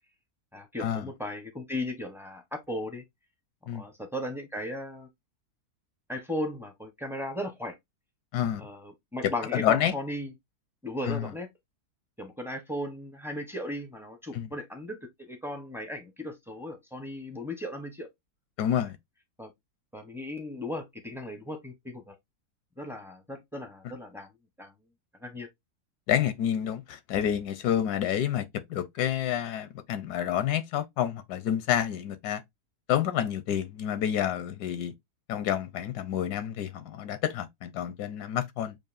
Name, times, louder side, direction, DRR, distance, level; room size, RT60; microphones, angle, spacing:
voice 1, 0.5-3.0 3.7-5.1 6.1-7.7 8.6-10.3 10.8-11.5 12.2-18.1 19.4-19.5 19.9-22.1 22.8-24.3 24.6-24.7 25.2-25.5, left 1 dB, 5° right, 0.4 m, -36 dB
voice 2, 8.3-8.7 9.5-9.9 11.0-11.3 14.3-14.5 18.6-19.0 23.8-23.9 26.1-32.4 32.9-34.9 35.3-38.8, left 10 dB, 85° left, 1.2 m, -29 dB
7.3 x 2.5 x 2.4 m
omnidirectional pair, 1.7 m